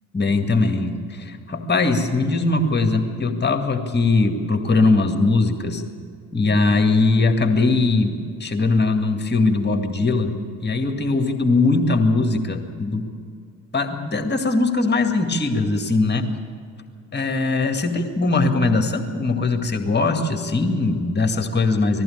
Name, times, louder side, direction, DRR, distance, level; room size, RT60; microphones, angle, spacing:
voice 1, 0.1-5.8 6.3-10.4 10.6-13.1 13.7-16.2 17.1-22.0, left 3 dB, 25° left, 5 dB, 2.1 m, -20 dB
20.0 x 15.0 x 8.8 m, 2.2 s
figure-of-eight pair, 50°, 43 cm